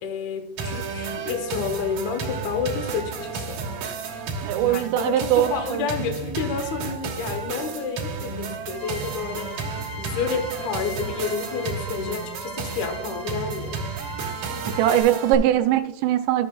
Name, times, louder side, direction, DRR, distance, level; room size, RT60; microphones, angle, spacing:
voice 1, 0.0-3.6 4.6-9.6 10.0-13.8, left 5 dB, 85° left, 6 dB, 1.6 m, -30 dB
sound 1, 0.6-15.3, right 4 dB, 60° right, 2.6 m, -32 dB
voice 2, 4.4-5.9 14.7-16.5, right 12 dB, 85° right, 9 dB, 2.8 m, -21 dB
sound 2, 8.7-15.0, left 2 dB, 65° left, 4.8 m, -41 dB
13.0 x 7.4 x 2.3 m, 0.81 s
omnidirectional pair, 4.9 m